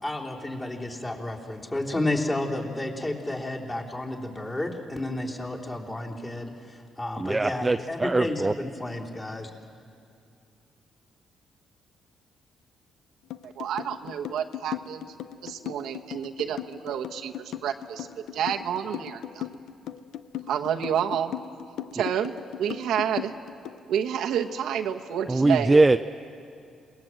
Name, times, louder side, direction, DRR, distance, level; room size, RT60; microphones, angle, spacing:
voice 1, 0.0-9.5, left 1 dB, 25° left, -1 dB, 3.5 m, -31 dB
voice 2, 7.2-8.5 25.3-26.0, right 2 dB, 20° right, 9 dB, 0.5 m, -21 dB
sound 1, 13.3-23.8, left 11 dB, 80° left, 0.7 m, -37 dB
voice 3, 13.4-15.0 15.4-19.4 20.5-21.3 21.9-23.3 23.9-25.8, right 9 dB, 80° right, 4 dB, 1.1 m, -29 dB
27.5 x 19.5 x 7.8 m, 2.5 s
cardioid pair, 90°, 0 cm